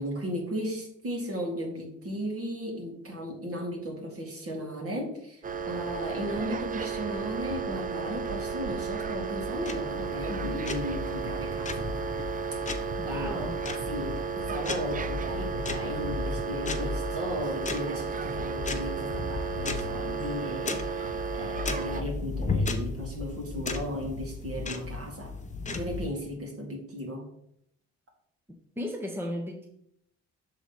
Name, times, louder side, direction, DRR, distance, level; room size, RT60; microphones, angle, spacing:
voice 1, 0.0-11.9 12.7-13.5 13.9-25.3 25.7-27.2, equal, 50° right, 0 dB, 2.4 m, -36 dB
sound 1, 5.4-22.0, right 6 dB, 30° right, 0.5 m, -34 dB
sound 2, 9.2-26.1, left 3 dB, 25° left, 0.8 m, -36 dB
voice 2, 10.2-10.6 13.0-13.7 28.8-29.7, left 1 dB, 5° right, 1 dB, 0.9 m, -36 dB
6.2 x 4.0 x 5.4 m, 0.73 s
cardioid pair, 90°, 30 cm